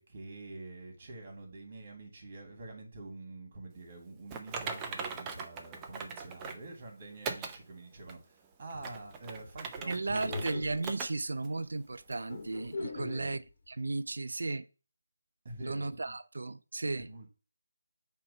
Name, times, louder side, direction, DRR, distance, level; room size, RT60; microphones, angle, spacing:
voice 1, 0.0-10.5 12.9-13.4 15.4-16.1 17.0-17.3, right 2 dB, 35° right, 2.6 m, -46 dB
Typing, 4.3-6.7 7.2-7.6 8.1-8.2 8.7-10.5 10.8-11.1 11.4-11.5 12.1-12.2, right 5 dB, 15° right, 0.6 m, -39 dB
sound 1, 8.7-9.0 10.2-11.0 12.3-13.3, left 3 dB, 45° left, 1.6 m, -41 dB
voice 2, 9.8-13.4 13.7-14.7 15.6-17.1, right 3 dB, 75° right, 0.6 m, -35 dB
7.6 x 3.1 x 5.6 m
figure-of-eight pair, 165°, 0 cm